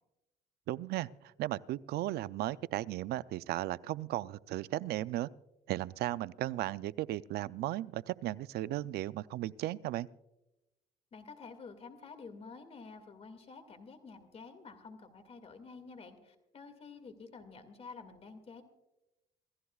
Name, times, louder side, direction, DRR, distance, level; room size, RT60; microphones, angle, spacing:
voice 1, 0.7-5.3 5.7-10.1, right 15 dB, 70° right, 17 dB, 0.5 m, -36 dB
voice 2, 11.1-18.6, left 4 dB, 35° left, 9 dB, 2.1 m, -50 dB
27.5 x 15.0 x 2.4 m, 0.97 s
cardioid pair, 110°, 17 cm